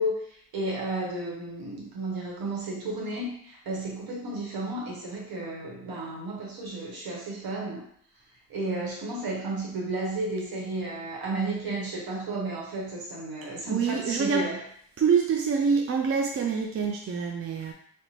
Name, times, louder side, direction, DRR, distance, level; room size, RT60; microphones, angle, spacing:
voice 1, 0.0-7.8 8.5-14.6, right 2 dB, 65° right, -2 dB, 1.0 m, -33 dB
voice 2, 13.7-14.4 15.0-17.7, right 6 dB, 35° right, 1 dB, 0.5 m, -25 dB
2.8 x 2.1 x 2.7 m, 0.65 s
hypercardioid pair, 40°, 38 cm